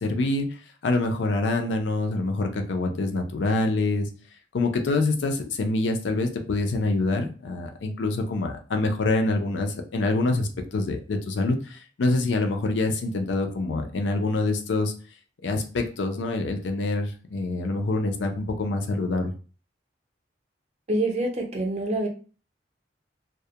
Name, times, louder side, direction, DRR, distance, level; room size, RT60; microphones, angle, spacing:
voice 1, 0.0-0.5 0.8-4.1 4.5-14.9 15.4-19.3, left 2 dB, 80° left, 5 dB, 0.4 m, -26 dB
voice 2, 20.9-22.1, right 1 dB, 35° right, 2 dB, 0.5 m, -26 dB
2.3 x 2.0 x 2.7 m, 0.38 s
head